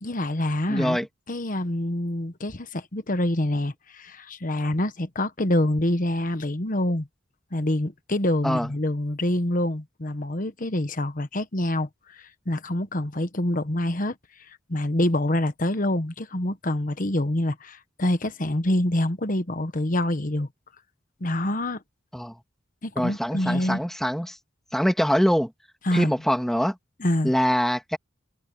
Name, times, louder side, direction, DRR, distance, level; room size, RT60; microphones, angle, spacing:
voice 1, 0.0-1.0 1.3-7.1 7.5-11.9 12.5-14.1 14.7-20.5 21.2-21.8 22.8-23.8 25.8-26.1 27.0-27.3, left 1 dB, 40° left, 1.3 m, -26 dB
voice 2, 0.7-1.1 8.4-8.7 22.1-22.4 23.0-24.4 24.7-25.5 25.9-26.8 27.2-28.0, equal, ahead, 2.1 m, -24 dB
head